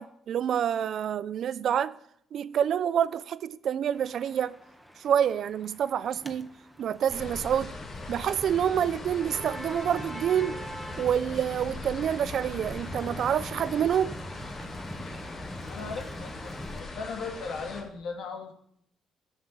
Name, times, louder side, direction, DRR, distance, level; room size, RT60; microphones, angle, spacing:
voice 1, 0.0-2.0 2.3-4.6 5.0-6.5 6.8-7.7 8.1-10.7 11.0-14.1, right 9 dB, 65° right, 0.5 m, -27 dB
sound 1, 3.9-16.8, equal, ahead, 1.6 m, -43 dB
sound 2, 7.1-17.8, left 3 dB, 60° left, 4.0 m, -41 dB
voice 2, 15.7-18.5, left 4 dB, 75° left, 2.3 m, -37 dB
13.5 x 6.5 x 8.7 m
cardioid pair, 90°, 0 cm